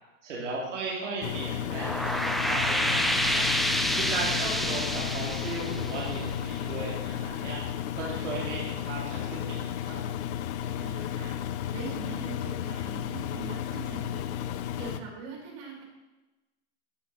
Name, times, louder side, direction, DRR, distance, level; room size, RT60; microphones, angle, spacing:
voice 1, 0.2-3.5 3.9-7.6 7.9-10.0, right 3 dB, 90° right, -4 dB, 2.8 m, -36 dB
Engine, 1.2-15.0, left 10 dB, 70° left, 0.8 m, -33 dB
sound 1, 1.6-6.8, equal, ahead, 0.5 m, -28 dB
voice 2, 4.2-4.8 10.7-11.4 11.7-14.3 14.8-15.8, right 5 dB, 60° right, -1 dB, 4.1 m, -42 dB
11.5 x 8.5 x 4.1 m, 1.1 s
hypercardioid pair, 115°, 35 cm